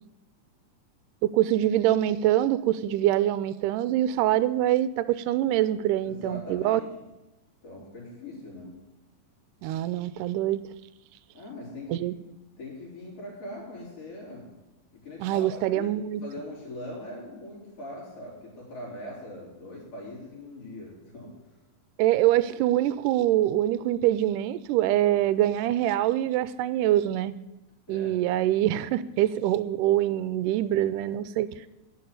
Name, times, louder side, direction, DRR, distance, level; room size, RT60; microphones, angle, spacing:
voice 1, 1.2-6.8 9.6-10.6 11.9-12.1 15.2-16.2 22.0-27.3 27.9-31.7, right 13 dB, 85° right, 15 dB, 2.1 m, -24 dB
voice 2, 6.0-6.9 7.6-8.7 11.3-12.0 12.6-14.5 14.9-15.9 16.2-21.3 27.9-28.2, left 1 dB, 45° left, -5 dB, 4.9 m, -41 dB
11.0 x 7.0 x 9.3 m, 1.0 s
omnidirectional pair, 3.8 m